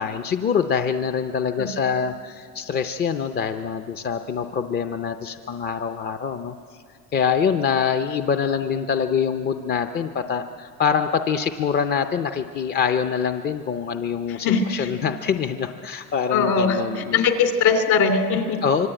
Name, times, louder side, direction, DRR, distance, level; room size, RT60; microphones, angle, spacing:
voice 1, 0.0-6.5 7.1-17.3 18.6-18.9, left 7 dB, 30° left, 7 dB, 0.6 m, -25 dB
voice 2, 14.3-14.9 16.3-18.6, left 5 dB, 55° left, 6 dB, 2.9 m, -21 dB
25.0 x 25.0 x 9.0 m, 2.3 s
cardioid pair, 160°, 34 cm